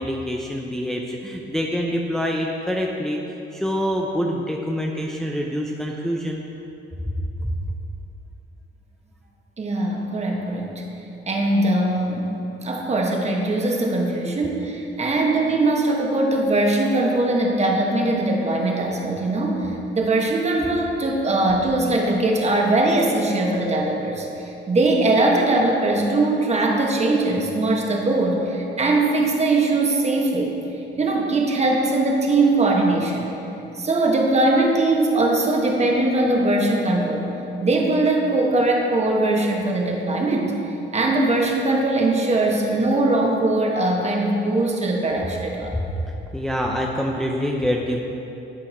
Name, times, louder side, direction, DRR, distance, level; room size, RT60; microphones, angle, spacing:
voice 1, 0.0-3.2 3.5-6.4 7.0-7.1 7.4-7.7 45.7-48.0, equal, ahead, -1 dB, 0.6 m, -26 dB
voice 2, 9.6-10.7 11.3-12.3 12.6-30.5 31.0-33.3 33.7-37.3 37.6-40.6 40.9-45.7, right 2 dB, 35° right, 0 dB, 1.2 m, -21 dB
11.0 x 4.6 x 4.3 m, 2.9 s
cardioid pair, 90°, 20 cm